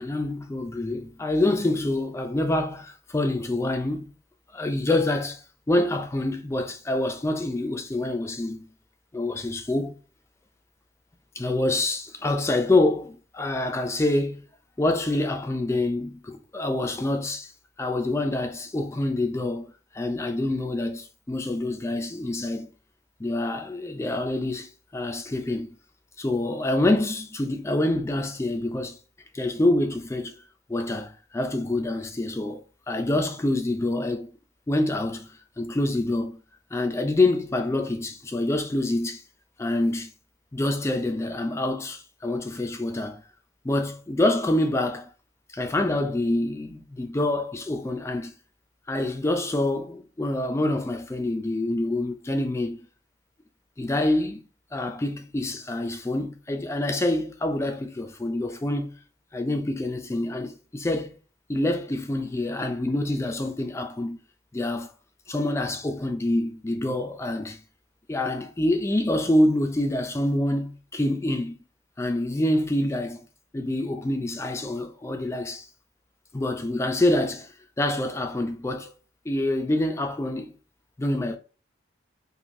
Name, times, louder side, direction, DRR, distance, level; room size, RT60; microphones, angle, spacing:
voice 1, 0.0-4.1 4.5-5.4 5.7-8.7 9.1-10.0 11.4-14.4 14.8-17.5 17.8-19.7 19.9-22.7 23.2-25.7 26.2-29.0 29.3-30.4 30.7-34.3 34.7-35.3 35.6-36.4 36.7-39.2 39.6-40.1 40.5-43.2 43.6-45.1 45.5-48.3 48.9-52.8 53.8-54.4 54.7-59.0 59.3-61.2 61.5-64.2 64.5-64.9 65.3-67.6 68.1-71.6 72.0-73.2 73.5-75.7 76.3-78.9 79.3-80.5 81.0-81.4, left 1 dB, 15° left, 0.3 m, -26 dB
3.1 x 2.5 x 2.6 m
head